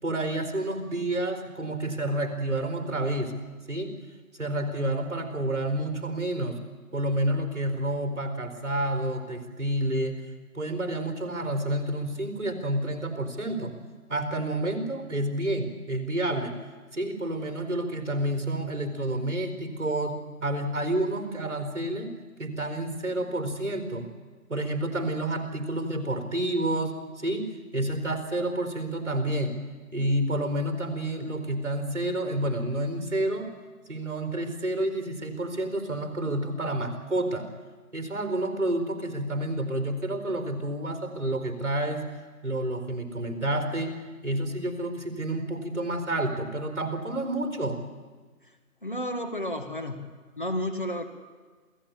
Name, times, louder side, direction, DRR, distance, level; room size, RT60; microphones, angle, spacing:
voice 1, 0.0-3.3 3.7-4.0 4.4-6.6 6.9-10.2 10.5-13.7 14.1-16.5 16.9-22.1 22.4-24.1 24.5-29.6 29.9-33.5 33.9-37.5 37.9-42.1 42.4-44.0 44.2-47.8, right 1 dB, 50° right, 6 dB, 4.4 m, -29 dB
voice 2, 48.8-50.1 50.4-51.0, left 1 dB, 35° left, 5 dB, 1.8 m, -31 dB
28.0 x 16.5 x 8.8 m, 1.4 s
figure-of-eight pair, 170°, 45 cm